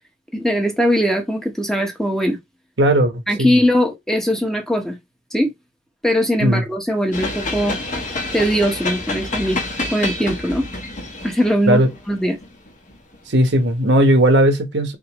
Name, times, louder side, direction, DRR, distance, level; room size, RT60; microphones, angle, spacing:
voice 1, 0.3-2.4 3.3-5.0 5.3-5.5 6.0-7.8 8.3-9.6 9.9-10.7 11.2-12.3, equal, 5° left, 0.9 m, -20 dB
voice 2, 2.8-3.6 6.4-6.6 11.7-11.9 13.3-15.0, equal, 75° right, 1.1 m, -16 dB
sound 1, 7.1-13.4, left 2 dB, 45° left, 1.2 m, -28 dB
3.9 x 3.7 x 3.0 m
head